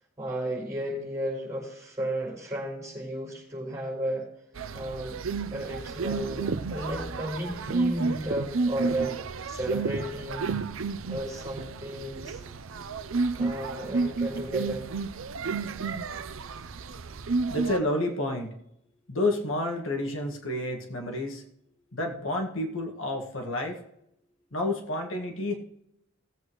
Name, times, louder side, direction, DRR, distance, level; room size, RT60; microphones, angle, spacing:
voice 1, 0.2-4.3 4.7-5.2 5.5-10.5 11.1-12.4 13.4-14.9, right 1 dB, 15° right, -1 dB, 5.3 m, -33 dB
sound 1, 4.6-17.8, right 4 dB, 85° right, 0.6 m, -31 dB
voice 2, 17.5-18.5 19.1-21.4 21.9-23.8 24.5-25.6, left 1 dB, 80° left, 3 dB, 1.8 m, -30 dB
18.5 x 8.0 x 3.1 m, 0.79 s
head